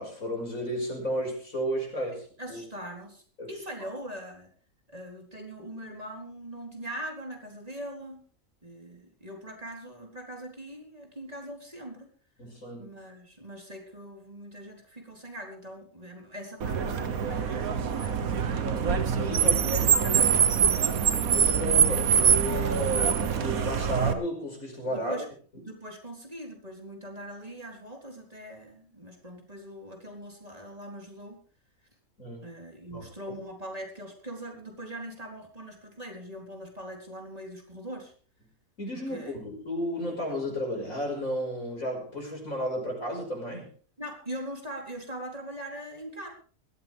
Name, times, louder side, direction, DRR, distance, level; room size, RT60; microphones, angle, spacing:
voice 1, 0.0-2.6 3.4-3.5 3.8-3.9 12.4-12.9 18.7-19.9 21.3-25.2 32.2-32.4 32.9-33.1 38.8-43.7, equal, 70° left, 1 dB, 6.0 m, -33 dB
voice 2, 2.4-3.2 3.5-4.5 4.9-8.2 8.6-12.1 12.8-18.4 19.0-20.9 24.9-25.3 25.5-31.4 32.4-38.1 38.9-39.4 44.0-46.3, right 1 dB, 25° right, 1 dB, 4.2 m, -41 dB
Car, 16.6-24.1, right 7 dB, 90° right, 1.7 m, -24 dB
20.0 x 14.5 x 3.6 m, 0.42 s
omnidirectional pair, 1.5 m